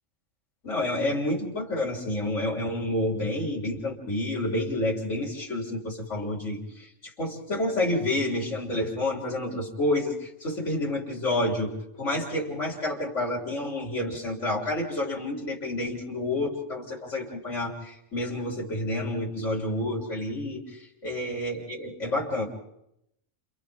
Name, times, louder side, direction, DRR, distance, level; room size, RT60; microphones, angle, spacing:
voice 1, 0.6-6.9 7.2-20.6 21.0-22.5, left 1 dB, 80° left, -2 dB, 3.8 m, -29 dB
29.5 x 28.5 x 3.5 m, 0.81 s
omnidirectional pair, 1.3 m